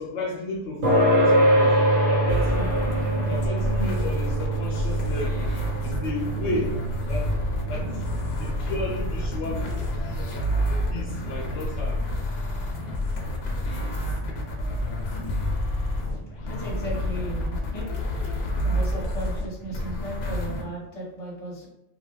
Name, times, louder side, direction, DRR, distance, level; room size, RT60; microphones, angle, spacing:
voice 1, 0.0-1.8 2.1-2.8 3.3-5.5 5.8-6.8 7.1-7.4 7.7-8.0 8.4-9.6 10.0-10.2 10.9-12.0, left 2 dB, 80° left, 0 dB, 0.9 m, -32 dB
sound 1, 0.8-15.7, right 1 dB, 55° right, 1.0 m, -26 dB
sound 2, 2.3-20.6, left 1 dB, 55° left, 0.5 m, -29 dB
voice 2, 16.5-17.9 18.6-21.7, right 1 dB, 30° left, -5 dB, 1.0 m, -35 dB
2.3 x 2.3 x 2.9 m, 0.84 s
omnidirectional pair, 1.2 m